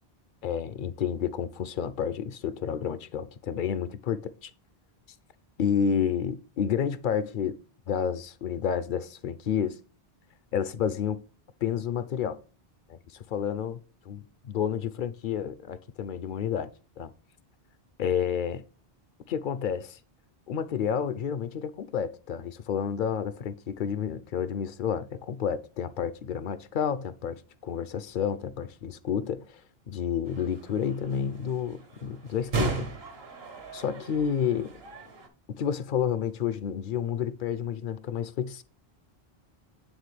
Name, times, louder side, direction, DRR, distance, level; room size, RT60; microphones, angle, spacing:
voice 1, 0.4-4.5 5.6-7.5 7.9-9.8 10.5-11.2 11.6-12.4 12.9-13.8 14.1-16.7 17.0-17.1 18.0-18.6 19.3-20.0 20.5-29.6 29.9-32.9 33.7-34.7 35.5-38.6, left 8 dB, 60° left, 0.6 m, -30 dB
sound 1, 30.3-35.3, right 4 dB, 75° right, 1.4 m, -36 dB
9.2 x 3.8 x 3.2 m
omnidirectional pair, 1.0 m